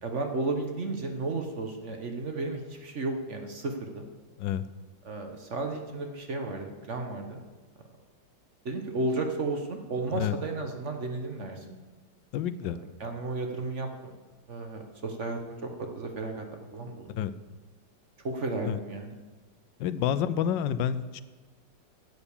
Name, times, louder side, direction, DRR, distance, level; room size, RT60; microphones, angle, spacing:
voice 1, 0.0-4.1 5.0-7.4 8.6-11.6 12.6-12.7 13.0-14.2 14.5-15.6 15.9-17.3 18.2-19.1, right 2 dB, 45° right, 4 dB, 1.3 m, -33 dB
voice 2, 12.3-12.8 17.2-17.3 18.6-18.8 19.8-21.2, left 9 dB, 80° left, 14 dB, 1.2 m, -29 dB
11.5 x 8.3 x 7.1 m, 1.3 s
omnidirectional pair, 2.0 m